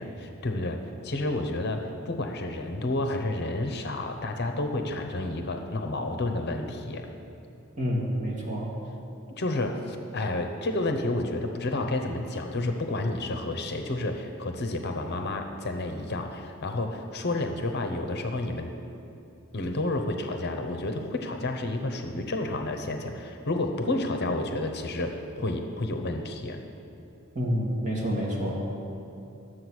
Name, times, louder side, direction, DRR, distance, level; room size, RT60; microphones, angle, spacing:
voice 1, 0.0-7.1 9.4-18.7 19.5-26.6, left 2 dB, 50° left, 5 dB, 0.9 m, -30 dB
voice 2, 7.8-8.7 27.3-28.6, equal, 35° right, -3 dB, 2.4 m, -28 dB
12.0 x 7.7 x 6.3 m, 2.8 s
head